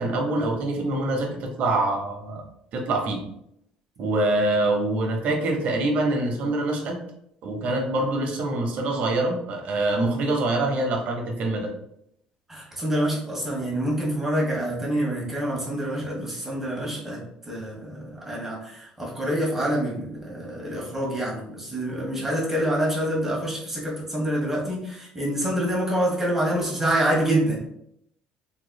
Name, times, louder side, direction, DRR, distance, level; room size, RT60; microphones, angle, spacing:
voice 1, 0.0-2.4 2.7-3.2 4.0-7.0 7.4-11.7, right 2 dB, 60° right, 3 dB, 0.9 m, -25 dB
voice 2, 12.5-27.6, right 1 dB, 15° right, -3 dB, 1.3 m, -26 dB
3.6 x 3.2 x 2.3 m, 0.74 s
cardioid pair, 110°, 3 cm